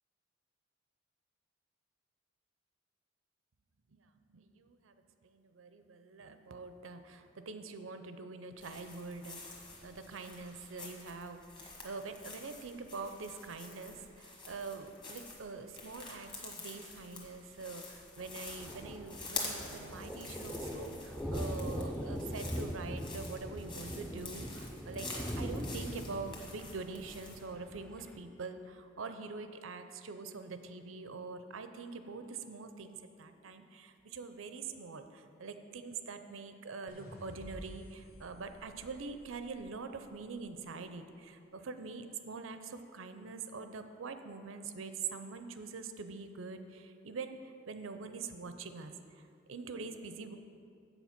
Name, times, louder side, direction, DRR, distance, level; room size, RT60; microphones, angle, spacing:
voice 1, 3.9-50.4, right 4 dB, 90° right, 9 dB, 0.6 m, -44 dB
sound 1, 8.6-27.4, left 3 dB, 25° left, 1.5 m, -47 dB
Thunder, 18.2-28.2, equal, 5° left, 0.5 m, -41 dB
sound 2, 36.9-40.1, equal, 50° left, 1.2 m, -52 dB
7.8 x 7.1 x 5.8 m, 2.5 s
head